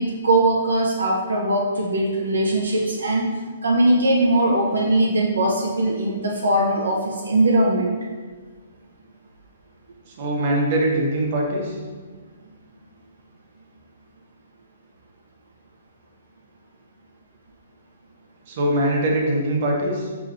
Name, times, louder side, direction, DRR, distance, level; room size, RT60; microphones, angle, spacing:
voice 1, 0.0-3.3 3.6-7.9, right 1 dB, 85° right, -2 dB, 0.5 m, -20 dB
voice 2, 10.1-11.8 18.5-20.1, right 1 dB, 50° right, -2 dB, 0.9 m, -22 dB
4.8 x 2.9 x 2.4 m, 1.4 s
hypercardioid pair, 135°, 0 cm